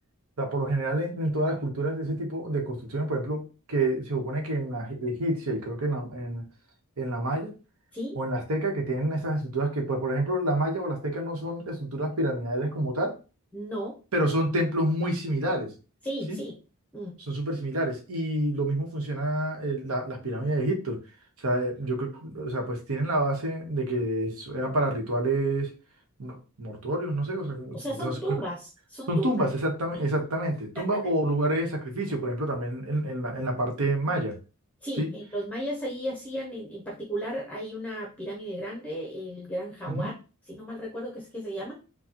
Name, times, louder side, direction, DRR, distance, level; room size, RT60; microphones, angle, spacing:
voice 1, 0.4-6.4 7.0-7.5 8.1-13.2 14.1-15.7 16.3-16.4 17.2-21.0 21.4-25.7 26.2-28.4 29.1-34.4 35.0-35.1 39.9-40.1, right 1 dB, 75° right, 2 dB, 1.1 m, -28 dB
voice 2, 13.5-14.0 16.0-16.5 16.9-17.1 27.7-28.6 28.9-29.5 29.9-30.0 30.7-31.1 34.8-40.1 40.5-41.8, right 1 dB, 5° left, -2 dB, 0.7 m, -34 dB
4.6 x 2.2 x 2.9 m, 0.32 s
head